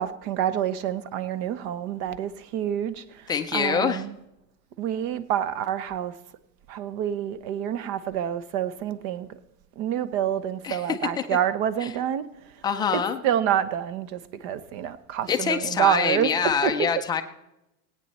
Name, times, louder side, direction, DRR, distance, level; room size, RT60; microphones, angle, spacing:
voice 1, 0.0-4.2 4.8-6.2 6.7-9.4 9.8-12.6 12.9-16.3 16.6-16.9, right 10 dB, 45° right, 1.0 m, -28 dB
voice 2, 3.3-4.0 10.6-10.8 12.6-13.2 15.3-17.2, left 7 dB, 10° left, 0.3 m, -25 dB
17.5 x 9.3 x 4.2 m
supercardioid pair, 130°, 47 cm